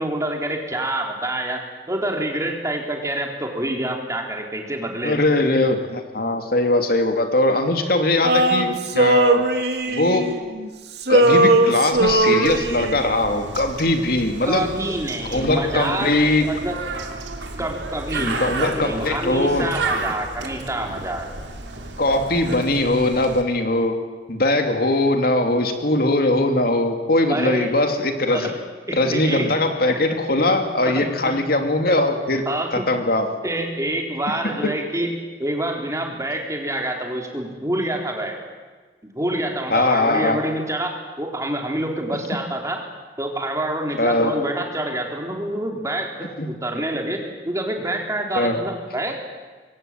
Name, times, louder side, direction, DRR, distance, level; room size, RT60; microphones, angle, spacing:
voice 1, 0.0-1.6 1.9-5.2 14.4-16.2 16.4-16.8 17.6-21.3 27.3-27.7 28.3-28.5 28.9-29.5 30.0-30.1 32.5-32.9 33.4-35.1 35.4-38.4 39.0-42.8 43.2-49.2, right 1 dB, 20° right, 2 dB, 4.0 m, -27 dB
voice 2, 5.0-9.5 9.9-10.3 11.1-14.7 15.3-16.5 18.2-19.7 22.0-24.0 24.3-28.5 28.9-33.4 34.4-34.7 39.7-40.4 44.0-44.4 46.4-46.5 48.3-48.6, left 2 dB, 60° left, 5 dB, 2.8 m, -21 dB
Male singing, 8.2-10.7 11.0-13.1, right 2 dB, 65° right, 2.4 m, -19 dB
Bird, 12.4-23.4, right 3 dB, 90° right, 3.2 m, -32 dB
26.0 x 23.0 x 9.2 m, 1.4 s
head